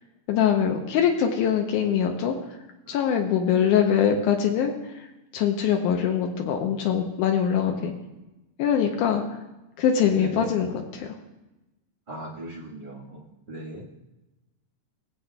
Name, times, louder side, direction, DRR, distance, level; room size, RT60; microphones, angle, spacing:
voice 1, 0.3-2.3 2.9-4.7 5.3-7.9 8.6-9.2 9.8-11.1, left 8 dB, 85° left, 3 dB, 2.2 m, -23 dB
voice 2, 12.1-13.2 13.5-13.8, right 1 dB, 80° right, -7 dB, 0.4 m, -37 dB
21.5 x 7.9 x 2.3 m, 1.0 s
omnidirectional pair, 3.5 m